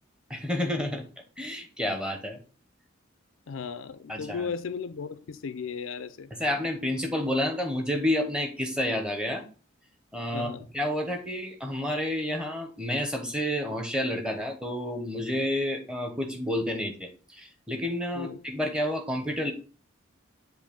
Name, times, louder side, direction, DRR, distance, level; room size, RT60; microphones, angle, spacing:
voice 1, 0.3-1.0 1.4-2.4 4.1-4.5 6.4-9.4 10.1-10.5 10.7-17.1 17.4-19.5, left 1 dB, 5° right, 0.9 m, -29 dB
voice 2, 3.5-6.3 10.3-10.7 18.1-18.4, left 6 dB, 80° left, 0.5 m, -36 dB
7.4 x 2.7 x 5.2 m
head